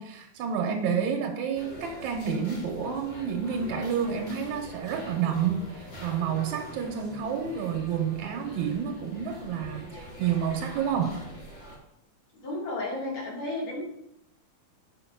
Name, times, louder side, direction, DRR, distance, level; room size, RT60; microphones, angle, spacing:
voice 1, 0.0-11.2, right 7 dB, 75° right, 2 dB, 2.2 m, -29 dB
sound 1, 1.5-11.8, equal, 30° left, 2.5 m, -43 dB
voice 2, 12.4-13.8, left 2 dB, 60° left, -3 dB, 4.0 m, -32 dB
8.4 x 5.5 x 5.8 m, 0.78 s
omnidirectional pair, 3.5 m